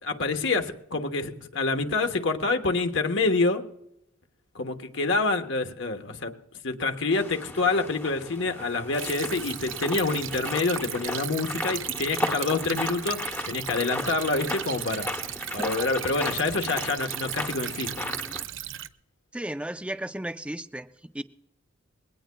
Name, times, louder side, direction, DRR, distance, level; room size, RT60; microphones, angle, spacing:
voice 1, 0.0-3.7 4.5-6.3 6.6-15.2 15.5-18.2, left 3 dB, 60° left, 6 dB, 1.2 m, -27 dB
sound 1, 7.1-18.4, left 1 dB, 10° left, 0.9 m, -36 dB
Stream / Trickle dribble, 8.9-18.9, right 12 dB, 65° right, 0.6 m, -36 dB
voice 2, 19.3-20.9 21.1-21.2, right 1 dB, 5° right, 9 dB, 0.5 m, -34 dB
21.0 x 18.0 x 2.3 m, 0.81 s
head